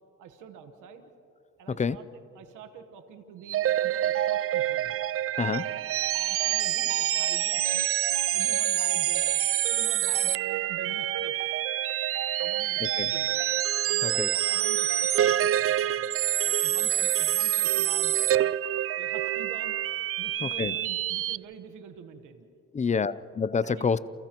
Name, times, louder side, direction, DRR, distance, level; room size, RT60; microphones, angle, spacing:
voice 1, 0.2-1.1 1.6-5.0 5.8-9.4 9.7-11.4 12.4-13.4 13.9-16.1 16.4-18.5 19.0-19.8 20.2-22.5 23.6-23.9, right 7 dB, 90° right, 7 dB, 1.3 m, -46 dB
sound 1, 3.5-21.4, right 12 dB, 50° right, 0.4 m, -26 dB
voice 2, 5.4-5.7 13.0-13.1 14.0-14.3 20.4-20.7 22.7-24.0, left 5 dB, 25° left, 17 dB, 0.5 m, -27 dB
30.0 x 28.5 x 3.0 m, 2.8 s
cardioid pair, 90°, 30 cm